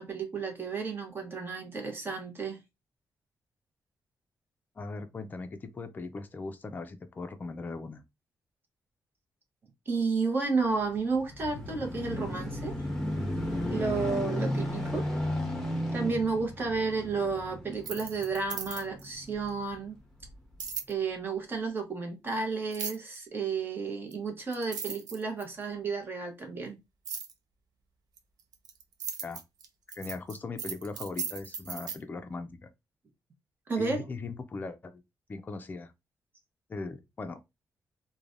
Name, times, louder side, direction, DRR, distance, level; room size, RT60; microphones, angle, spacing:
voice 1, 0.0-2.6 9.9-12.7 13.7-15.0 15.9-20.0 20.9-26.8 33.7-34.0, right 4 dB, 30° right, 0.8 m, -32 dB
voice 2, 4.8-8.0 29.2-29.4 30.0-32.7 33.8-35.0 35.3-35.9 36.7-37.4, left 3 dB, 30° left, 0.4 m, -39 dB
sound 1, 10.8-19.6 20.2-20.3, left 1 dB, 5° left, 0.8 m, -34 dB
sound 2, 17.7-19.1 20.6-20.9 22.7-23.2 24.1-24.2 24.5-25.6 27.1-27.3 28.2-32.0, right 6 dB, 85° right, 0.5 m, -37 dB
3.1 x 2.2 x 2.5 m
wide cardioid pair, 145°, 7 cm